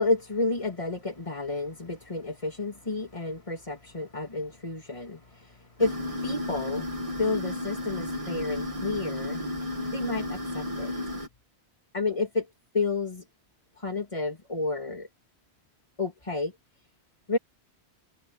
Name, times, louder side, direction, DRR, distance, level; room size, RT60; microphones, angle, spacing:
voice 1, 0.0-9.4 9.9-10.9 11.9-12.5 12.7-13.2 13.8-15.1 16.0-16.5 17.3-17.4, left 3 dB, 30° left, 2.7 m, -31 dB
sound 1, 5.8-11.3, left 1 dB, 30° right, 2.1 m, -33 dB
omnidirectional pair, 1.1 m